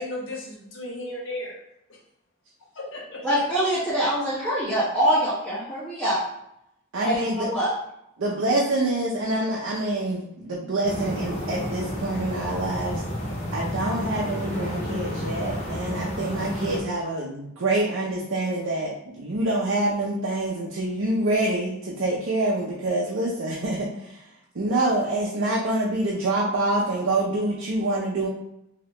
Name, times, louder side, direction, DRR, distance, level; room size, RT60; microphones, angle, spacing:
voice 1, 0.0-1.6 2.7-3.2, left 1 dB, 65° left, -2 dB, 0.9 m, -34 dB
voice 2, 3.2-6.2 7.0-7.2 7.5-7.7, equal, 5° left, -14 dB, 1.1 m, -24 dB
voice 3, 6.9-7.5 8.2-13.0 13.5-24.2 24.5-28.3, right 2 dB, 75° right, -4 dB, 0.6 m, -26 dB
sound 1, 10.8-16.8, equal, 30° left, 0.6 m, -31 dB
2.9 x 2.8 x 3.2 m, 0.80 s
head